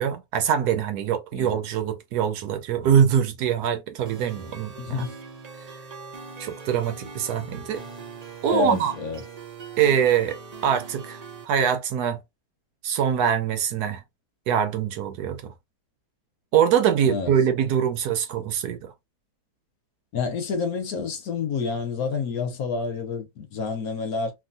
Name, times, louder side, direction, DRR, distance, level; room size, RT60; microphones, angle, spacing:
voice 1, 0.0-5.1 6.4-7.8 8.4-8.9 9.8-10.4 10.6-12.2 12.8-14.0 14.5-15.5 16.5-18.9, right 8 dB, 75° right, 1.1 m, -23 dB
sound 1, 4.1-11.4, right 4 dB, 55° right, 0.4 m, -41 dB
voice 2, 4.8-5.1 8.4-9.2 17.0-17.3 20.1-24.3, left 5 dB, 65° left, 1.1 m, -28 dB
2.9 x 2.6 x 2.5 m
omnidirectional pair, 1.8 m